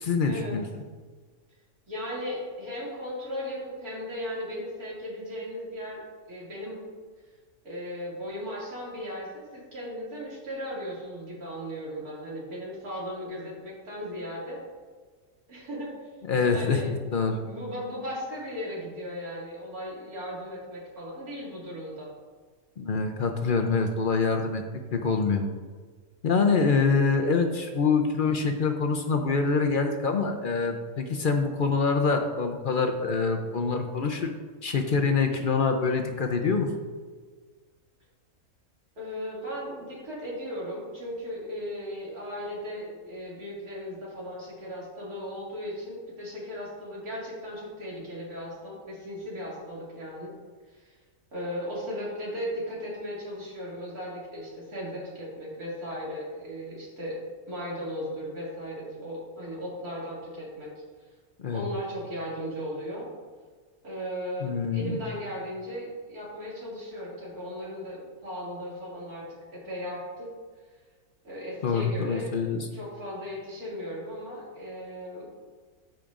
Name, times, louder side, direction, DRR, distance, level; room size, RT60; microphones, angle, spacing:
voice 1, 0.0-0.7 16.3-16.8 17.1-17.4 22.8-24.6 24.9-25.4 26.2-34.3 34.6-36.7 61.4-61.6 64.4-65.0 71.6-72.7, left 4 dB, 55° left, 4 dB, 0.6 m, -25 dB
voice 2, 1.9-6.0 6.3-6.8 7.6-14.6 15.5-15.9 16.5-16.9 17.3-22.1 39.0-50.3 50.7-51.0 51.3-57.2 57.5-60.7 61.5-63.1 63.8-69.2 69.5-70.3 71.2-75.3, equal, 85° right, -6 dB, 2.9 m, -36 dB
13.5 x 5.2 x 2.5 m, 1.5 s
omnidirectional pair, 1.5 m